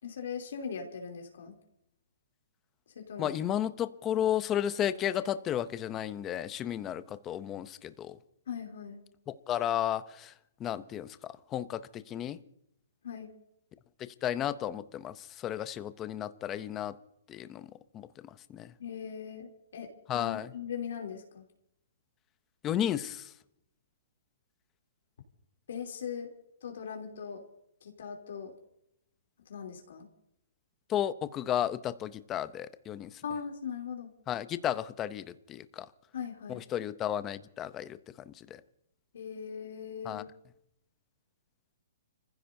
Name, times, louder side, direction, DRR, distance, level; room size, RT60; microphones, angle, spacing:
voice 1, 0.0-1.6 2.9-3.3 8.5-9.0 13.0-13.3 18.8-21.4 25.7-26.3 26.6-27.4 27.8-28.5 29.5-30.1 33.2-34.1 36.1-36.6 39.1-40.3, left 7 dB, 65° left, 2 dB, 3.1 m, -40 dB
voice 2, 3.2-8.2 9.3-10.3 10.6-12.4 14.0-17.0 17.3-18.7 20.1-20.5 22.6-23.3 30.9-33.1 34.3-35.9 36.5-38.0 38.3-38.6 40.0-40.2, left 10 dB, 15° left, 13 dB, 0.6 m, -33 dB
30.0 x 15.5 x 2.7 m, 0.76 s
hypercardioid pair, 170°, 0 cm